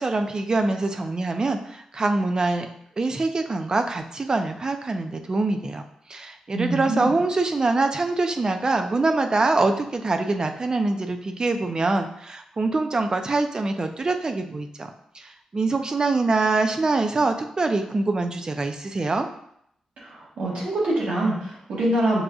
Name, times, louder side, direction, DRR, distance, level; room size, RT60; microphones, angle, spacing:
voice 1, 0.0-2.7 3.0-5.8 6.1-14.9 15.1-19.3, right 3 dB, 35° right, 6 dB, 0.4 m, -24 dB
voice 2, 6.5-7.1 20.0-22.2, right 1 dB, 85° right, -4 dB, 1.3 m, -25 dB
6.1 x 2.5 x 2.3 m, 0.72 s
wide cardioid pair, 100°, 2 cm